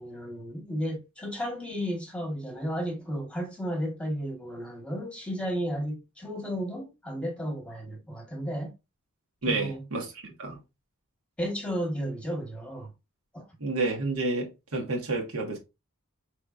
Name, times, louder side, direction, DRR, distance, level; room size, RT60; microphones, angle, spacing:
voice 1, 0.0-8.7 9.5-9.8 11.4-12.9 13.3-13.4, equal, 5° left, 1.2 m, -33 dB
voice 2, 9.4-10.6 13.6-15.6, right 3 dB, 85° right, 1.4 m, -30 dB
5.3 x 3.2 x 2.4 m
head